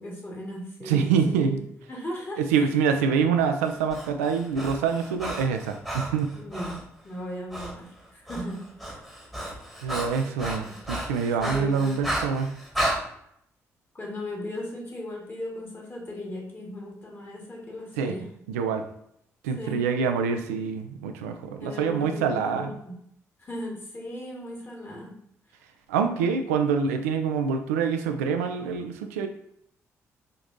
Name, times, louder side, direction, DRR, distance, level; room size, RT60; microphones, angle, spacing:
voice 1, 0.0-1.6 1.9-2.4 6.3-9.0 10.6-10.8 11.4-12.1 13.9-18.2 19.6-19.8 21.6-23.0 23.4-25.1, left 1 dB, 30° left, -2 dB, 1.6 m, -37 dB
voice 2, 0.8-1.6 2.4-6.3 9.8-12.6 18.0-18.1 18.5-18.8 19.4-22.7 25.9-29.3, right 6 dB, 75° right, 6 dB, 0.4 m, -26 dB
Breathing, 3.6-6.8 7.5-7.7 8.0-13.0, right 1 dB, ahead, 1.3 m, -33 dB
5.1 x 2.8 x 2.6 m, 0.73 s
figure-of-eight pair, 40°, 8 cm